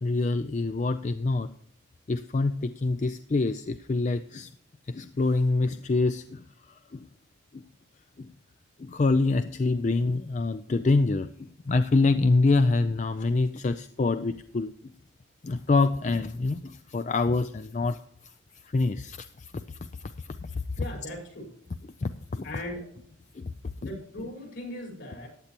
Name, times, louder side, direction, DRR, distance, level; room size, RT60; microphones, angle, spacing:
voice 1, 0.0-1.5 2.1-4.5 4.9-6.4 8.9-11.3 11.7-14.7 15.4-18.0 18.7-19.2 20.4-20.5 22.0-22.4 23.4-23.5, left 3 dB, 35° left, 11 dB, 0.4 m, -25 dB
voice 2, 20.8-21.5 22.4-22.9 23.8-25.3, left 1 dB, 65° left, 0 dB, 4.7 m, -38 dB
15.0 x 10.0 x 3.0 m, 0.68 s
head